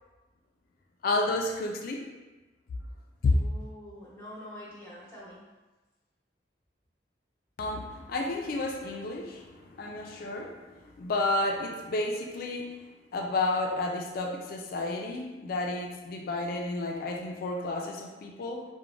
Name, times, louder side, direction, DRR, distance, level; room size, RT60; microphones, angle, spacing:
voice 1, 1.0-2.0 3.2-3.3 7.6-12.8 13.1-18.7, left 2 dB, 55° left, 1 dB, 0.3 m, -31 dB
voice 2, 3.3-5.4, left 1 dB, 15° left, -8 dB, 0.9 m, -45 dB
3.0 x 2.1 x 2.5 m, 1.2 s
head